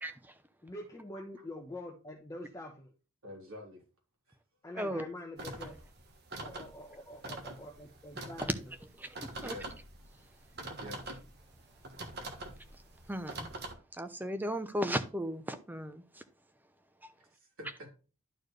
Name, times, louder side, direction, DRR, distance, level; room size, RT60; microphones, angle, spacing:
voice 1, 0.0-0.3 4.8-5.1 8.4-8.5 9.0-9.6 13.1-13.5 13.9-16.2, equal, 10° right, 0.6 m, -36 dB
voice 2, 0.6-2.9 4.6-5.8 6.4-8.5, left 1 dB, 15° left, 0.9 m, -45 dB
voice 3, 3.2-3.8 4.3-4.4 7.0-7.1 9.4-9.7 10.8-11.0 17.2-17.9, left 1 dB, 75° right, 3.5 m, -47 dB
sound 1, 5.4-13.7, right 2 dB, 45° right, 1.3 m, -45 dB
11.5 x 4.4 x 3.2 m
head